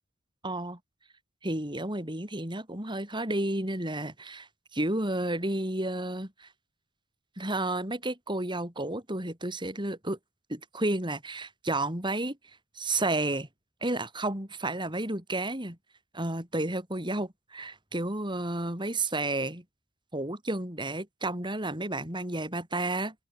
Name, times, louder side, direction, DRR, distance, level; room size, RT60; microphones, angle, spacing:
voice 1, 0.4-0.8 1.4-6.5 7.4-10.2 10.5-12.4 12.8-13.5 13.8-15.8 16.1-19.6 20.1-23.1, right 2 dB, 25° right, 6.1 m, -31 dB
open air
head